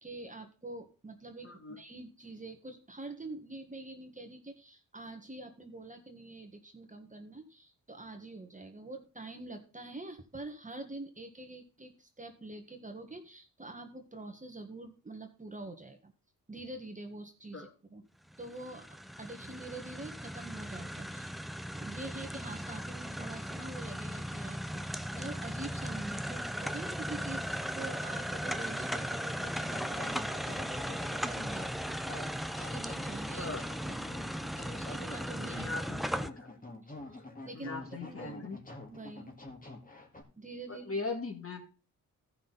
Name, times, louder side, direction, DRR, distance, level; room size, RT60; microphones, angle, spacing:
voice 1, 0.0-16.1 16.5-18.0 18.4-18.9 19.2-21.4 21.7-32.4 32.7-33.5 33.8-34.0 34.7-35.6 37.1-38.4 38.9-39.3 40.4-40.9, right 2 dB, 20° right, 5 dB, 1.6 m, -45 dB
voice 2, 1.4-1.8 17.5-17.7 33.4-33.6 35.5-36.5 37.5-38.6 40.7-41.6, left 3 dB, 40° left, 2 dB, 2.5 m, -39 dB
sound 1, 18.3-36.3, equal, ahead, 0.6 m, -37 dB
sound 2, 29.6-40.2, left 2 dB, 25° left, 2.1 m, -47 dB
14.0 x 5.8 x 4.1 m, 0.33 s
cardioid pair, 60°, 34 cm